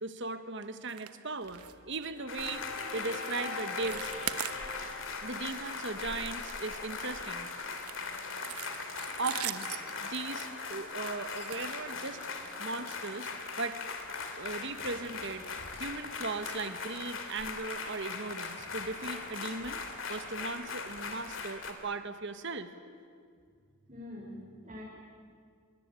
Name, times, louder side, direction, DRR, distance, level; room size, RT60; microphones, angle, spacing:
voice 1, 0.0-2.7 2.9-4.1 5.2-7.5 9.2-9.7 10.0-12.3 12.6-13.3 13.6-13.8 14.4-15.5 15.7-19.8 20.1-22.7, right 3 dB, 55° right, 9 dB, 1.5 m, -38 dB
sound 1, 0.9-1.1 1.4-1.7 2.0-2.2 2.6-2.8 3.2-3.4 3.7-5.1 5.5-5.7 6.1-7.2 7.7-12.3 13.1-13.2 13.6-13.7 14.1-14.2, right 11 dB, 90° right, 1.2 m, -41 dB
sound 2, 1.4-7.3, left 3 dB, 80° left, 4.9 m, -46 dB
sound 3, 2.3-21.7, left 4 dB, 60° left, 2.9 m, -40 dB
voice 2, 23.9-24.8, left 1 dB, 30° right, -5 dB, 5.2 m, -44 dB
25.5 x 23.0 x 9.2 m, 2.1 s
head